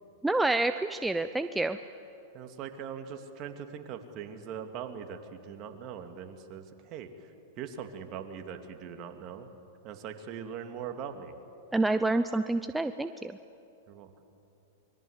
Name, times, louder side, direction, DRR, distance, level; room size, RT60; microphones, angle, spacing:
voice 1, 0.2-1.8 11.7-13.4, right 2 dB, 5° right, 9 dB, 0.7 m, -28 dB
voice 2, 2.3-7.1 7.6-9.5 9.8-11.3 13.9-14.1, right 7 dB, 45° right, 6 dB, 2.4 m, -41 dB
25.5 x 22.5 x 8.1 m, 2.8 s
hypercardioid pair, 110°, 0 cm